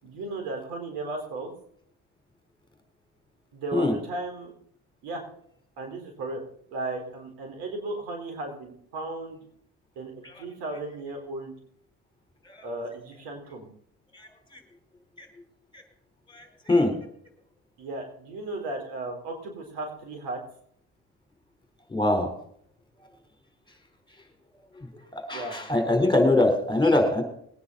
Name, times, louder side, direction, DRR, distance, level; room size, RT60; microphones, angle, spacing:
voice 1, 0.0-1.5 3.5-4.5 5.0-5.2 5.8-6.4 6.7-9.5 10.0-11.5 12.6-13.7 17.8-20.4 25.3-25.6, right 2 dB, 90° right, 3 dB, 4.5 m, -35 dB
voice 2, 16.3-16.9 21.9-22.3 25.1-27.2, left 2 dB, 10° left, 5 dB, 4.3 m, -23 dB
21.0 x 9.9 x 4.2 m, 0.65 s
supercardioid pair, 75°, 40 cm